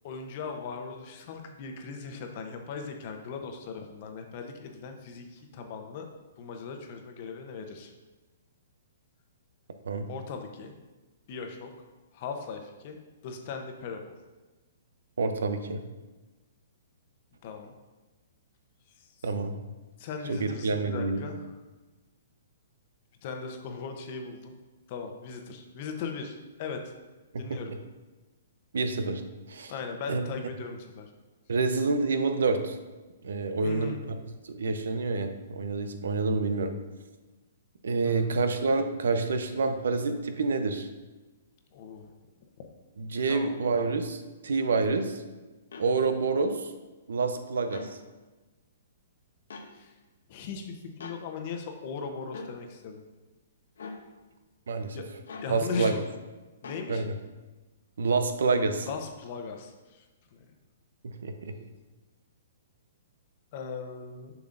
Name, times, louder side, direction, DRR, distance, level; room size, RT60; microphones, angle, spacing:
voice 1, 0.0-6.1 6.4-7.9 10.1-10.7 11.3-11.7 12.1-13.0 13.2-14.0 17.4-17.7 19.0-19.1 20.0-21.4 23.2-24.5 24.9-26.9 27.4-27.7 29.7-31.1 33.6-34.0 38.0-38.3 41.7-42.1 43.3-43.6 49.7-49.9 50.3-53.0 54.9-55.0 55.4-56.1 56.6-57.0 58.8-60.0 60.3-60.4 63.5-64.3, left 5 dB, 45° left, 4 dB, 0.9 m, -38 dB
voice 2, 15.2-15.8 19.2-19.6 20.3-21.2 27.3-27.8 28.7-29.2 29.5-29.7 30.1-30.2 31.5-32.8 33.2-34.2 34.4-36.7 37.8-40.9 43.0-45.2 45.8-46.7 47.1-47.9 54.7-55.0 55.5-55.9 56.9-57.1 58.0-58.9 61.0-61.5, right 4 dB, 85° right, 8 dB, 0.7 m, -28 dB
sound 1, 45.7-45.9 47.6-47.9 49.5-49.7 51.0-51.2 52.3-52.5 53.8-54.0 55.3-55.5 56.6-56.9, left 4 dB, 85° left, 0.8 m, -42 dB
6.9 x 6.0 x 2.6 m, 1.2 s
hypercardioid pair, 150°, 0 cm